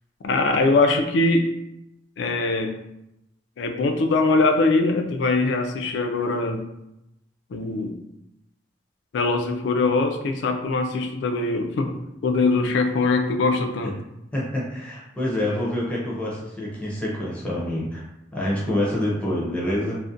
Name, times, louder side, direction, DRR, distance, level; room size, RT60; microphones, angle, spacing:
voice 1, 0.2-1.6 2.2-2.8 3.6-6.6 7.5-8.0 9.1-14.0, left 3 dB, 65° left, 5 dB, 0.3 m, -22 dB
voice 2, 14.3-18.0 18.3-20.0, left 1 dB, 5° left, -6 dB, 0.5 m, -26 dB
2.4 x 2.1 x 2.5 m, 0.87 s
head